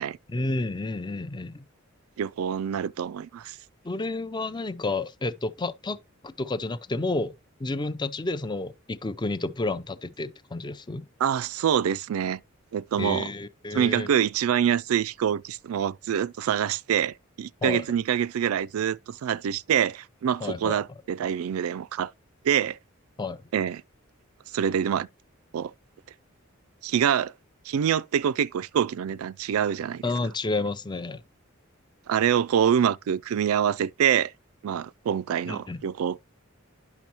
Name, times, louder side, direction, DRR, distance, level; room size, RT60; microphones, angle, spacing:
voice 1, 0.3-1.7 3.8-6.0 6.2-7.3 7.6-11.1 13.0-14.1 17.6-17.8 20.4-20.8 23.2-23.4 30.0-31.2 35.5-35.8, left 2 dB, 20° left, 0.5 m, -30 dB
voice 2, 2.2-3.6 11.2-12.4 12.7-13.3 13.7-22.1 22.4-22.8 23.5-23.8 24.5-25.1 25.5-25.7 26.8-27.3 27.7-30.1 32.1-34.3 34.6-36.2, right 9 dB, 85° right, 0.3 m, -25 dB
10.5 x 6.0 x 2.9 m
head